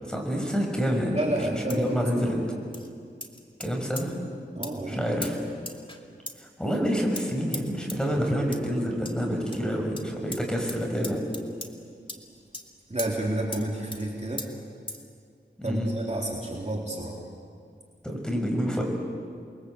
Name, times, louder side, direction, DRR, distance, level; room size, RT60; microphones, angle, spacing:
voice 1, 0.0-1.2 1.5-2.4 3.6-4.1 4.9-5.4 6.4-11.2 15.6-15.9 18.0-18.8, equal, 5° left, 1 dB, 6.0 m, -28 dB
voice 2, 1.1-2.3 4.6-5.0 12.9-14.4 15.6-17.2, right 1 dB, 35° right, -2 dB, 3.6 m, -30 dB
sound 1, 1.7-1.9 2.7-2.9 3.2-3.7 4.0-4.1 4.6-4.7 5.2-5.3 5.7-6.0 6.3-6.4 7.2-7.3 7.5-7.6 7.9-8.0 8.5-8.6 9.0-9.1 9.5-9.6 10.0-10.1 10.3-10.4 10.7-10.8 11.0-11.7 12.1-12.2 12.5-12.7 13.0-13.1 13.5-13.6 13.9-14.0 14.4-14.5 14.9-15.0, left 1 dB, 25° left, 2.5 m, -37 dB
29.0 x 22.5 x 8.1 m, 2.3 s
wide cardioid pair, 65°, 19 cm